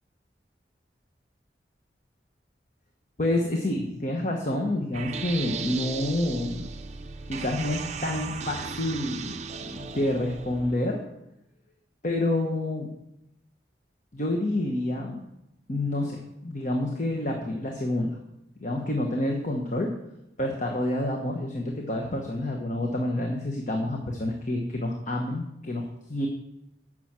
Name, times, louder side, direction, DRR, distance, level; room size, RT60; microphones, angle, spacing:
voice 1, 3.2-6.6 7.3-9.4 9.7-11.0 12.0-12.9 14.1-15.2 15.7-18.2 18.6-19.9 20.4-26.3, left 1 dB, 40° left, 2 dB, 1.1 m, -28 dB
sound 1, 4.9-10.8, right 5 dB, 40° right, 0.5 m, -36 dB
10.0 x 6.2 x 7.5 m, 0.86 s
head